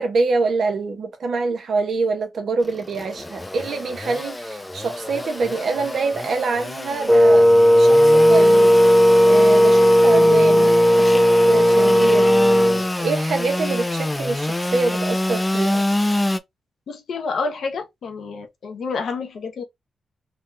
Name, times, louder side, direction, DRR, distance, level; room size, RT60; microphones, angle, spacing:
voice 1, 0.0-7.5 7.8-8.8 9.3-12.3 13.0-15.8, right 4 dB, 65° right, 0.9 m, -25 dB
Engine / Sawing, 2.6-16.4, left 1 dB, 15° left, 0.4 m, -26 dB
Wind instrument woodwind instrument, 7.1-12.9, equal, 10° right, 0.8 m, -14 dB
voice 2, 16.9-19.6, left 4 dB, 70° left, 0.8 m, -29 dB
3.4 x 2.3 x 2.5 m
cardioid pair, 70°, 0 cm